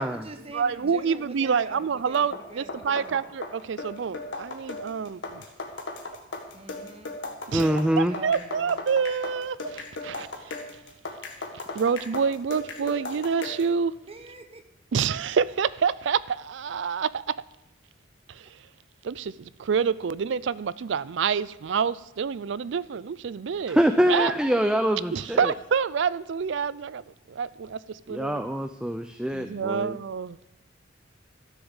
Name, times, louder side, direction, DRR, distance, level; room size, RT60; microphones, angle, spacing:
voice 1, 0.0-3.2 6.5-7.2 8.1-8.8 14.1-14.6, right 2 dB, 30° right, 1.0 m, -43 dB
voice 2, 0.5-5.4 7.5-7.7 8.0-10.5 11.7-13.9 14.9-17.3 18.3-18.5 19.0-23.8 24.1-24.3 25.1-27.0 27.3-28.4 29.3-30.4, right 6 dB, 65° right, 0.4 m, -27 dB
sound 1, 2.1-13.7, left 2 dB, 70° left, 1.8 m, -37 dB
voice 3, 7.5-8.2 23.7-25.5 28.1-30.0, equal, 5° right, 0.4 m, -24 dB
13.0 x 7.3 x 7.1 m
head